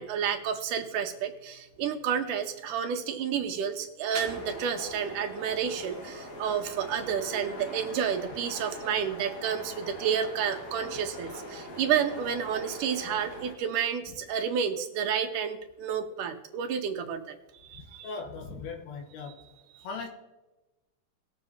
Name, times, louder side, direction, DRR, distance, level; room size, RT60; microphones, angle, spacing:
voice 1, 0.0-18.1 19.8-19.9, right 8 dB, 75° right, 6 dB, 1.9 m, -30 dB
sound 1, 4.1-13.5, left 1 dB, 45° left, 1.6 m, -42 dB
voice 2, 17.7-19.5 19.8-20.1, left 4 dB, 85° left, 2 dB, 3.1 m, -39 dB
19.5 x 7.6 x 2.8 m, 1.1 s
omnidirectional pair, 4.5 m